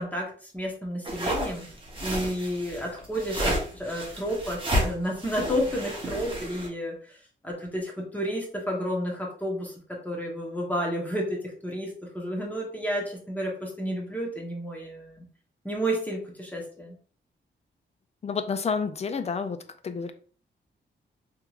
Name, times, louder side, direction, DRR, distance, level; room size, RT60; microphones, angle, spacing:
voice 1, 0.0-1.7 2.0-7.2 7.4-15.3 15.6-16.9, equal, 10° left, 1.0 m, -31 dB
sound 1, 1.0-6.7, equal, 25° right, 0.9 m, -31 dB
voice 2, 18.2-19.6 19.8-20.1, left 5 dB, 35° left, 0.3 m, -29 dB
3.6 x 3.0 x 2.3 m
wide cardioid pair, 130°, 20 cm